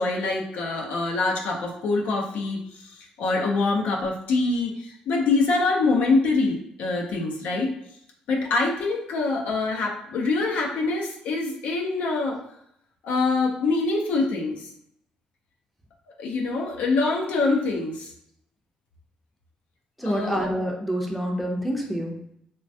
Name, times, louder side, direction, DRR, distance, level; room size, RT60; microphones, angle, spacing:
voice 1, 0.0-7.7 8.3-12.4 13.0-14.7 16.2-18.1 20.1-20.5, left 3 dB, 75° left, 0 dB, 0.5 m, -25 dB
voice 2, 20.0-22.1, equal, ahead, 0 dB, 0.4 m, -27 dB
3.2 x 2.1 x 2.6 m, 0.74 s
cardioid pair, 160°, 3 cm